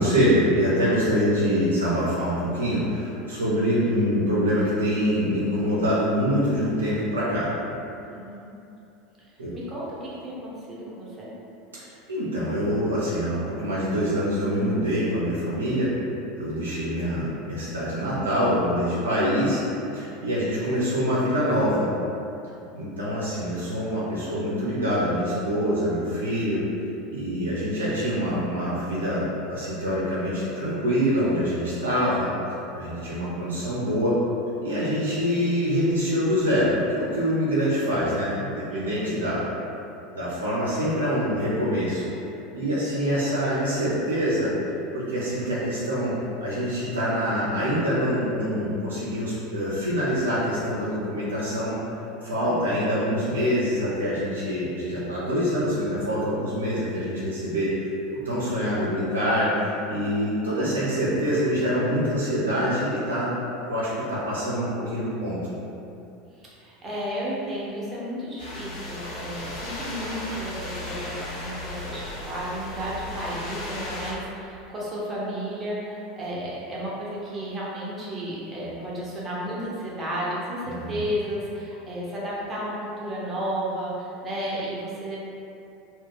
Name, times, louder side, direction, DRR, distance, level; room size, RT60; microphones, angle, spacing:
voice 1, 0.0-7.5 9.4-9.5 11.7-11.8 12.1-15.9 16.3-19.6 19.9-21.9 22.7-26.6 27.1-32.3 32.7-34.2 34.6-39.4 40.1-42.1 42.5-51.8 52.2-63.4 63.6-65.4 80.6-81.0, equal, 80° right, -8 dB, 0.5 m, -25 dB
voice 2, 8.1-8.5 9.2-9.3 9.5-11.3 38.7-39.2 52.4-52.8 66.3-85.2, equal, 25° right, -7 dB, 0.8 m, -33 dB
sound 1, 68.4-74.1, left 2 dB, 55° left, 0.8 m, -35 dB
2.3 x 2.2 x 3.6 m, 2.8 s
figure-of-eight pair, 75°, 0 cm